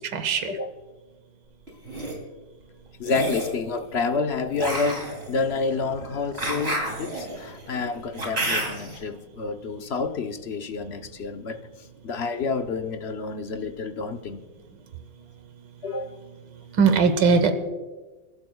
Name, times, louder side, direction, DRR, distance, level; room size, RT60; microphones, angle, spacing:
voice 1, 0.1-0.5 16.8-17.5, right 5 dB, 80° right, 1.8 m, -19 dB
sound 1, 1.7-2.1 3.0-3.6 4.6-9.0, right 1 dB, 35° right, 3.5 m, -30 dB
voice 2, 3.0-11.6 12.0-14.4 15.8-16.2, left 4 dB, 50° left, 0.9 m, -29 dB
29.0 x 12.0 x 2.3 m
omnidirectional pair, 1.9 m